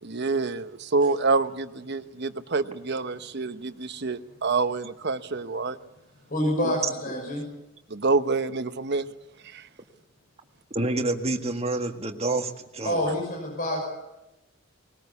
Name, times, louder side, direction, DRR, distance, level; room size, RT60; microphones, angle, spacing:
voice 1, 0.0-5.8 7.9-9.1 9.4-9.7, right 3 dB, 55° right, 11 dB, 1.0 m, -27 dB
voice 2, 6.3-7.4 12.8-13.8, left 1 dB, 45° left, 0 dB, 6.1 m, -27 dB
voice 3, 10.7-13.0, right 2 dB, 30° right, 5 dB, 1.8 m, -28 dB
20.5 x 20.0 x 8.4 m, 0.94 s
head